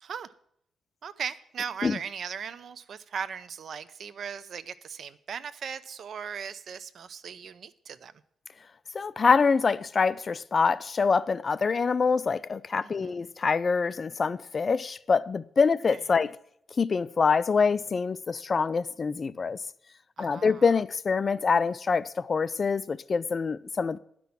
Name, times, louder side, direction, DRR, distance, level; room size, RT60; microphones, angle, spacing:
voice 1, 0.0-0.3 1.0-8.1 12.8-13.2 20.2-20.6, right 7 dB, 60° right, 0.7 m, -38 dB
voice 2, 8.9-16.4 16.8-19.6 20.2-24.0, left 5 dB, 40° left, 0.4 m, -25 dB
11.0 x 6.1 x 8.4 m
cardioid pair, 105°, 0 cm